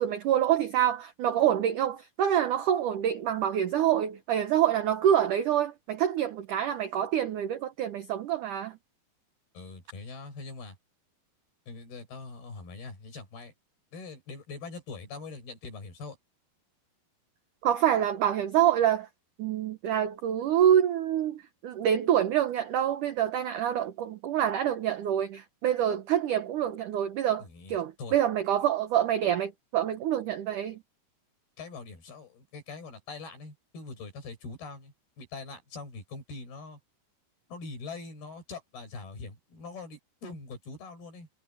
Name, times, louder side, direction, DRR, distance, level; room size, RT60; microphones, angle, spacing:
voice 1, 0.0-8.8 17.6-19.1 19.4-30.8, right 10 dB, 75° right, 1.9 m, -26 dB
voice 2, 9.5-10.8 11.7-13.5 13.9-16.2 27.4-28.2 31.6-36.8 37.5-41.4, left 4 dB, 60° left, 8.3 m, -43 dB
omnidirectional pair, 5.2 m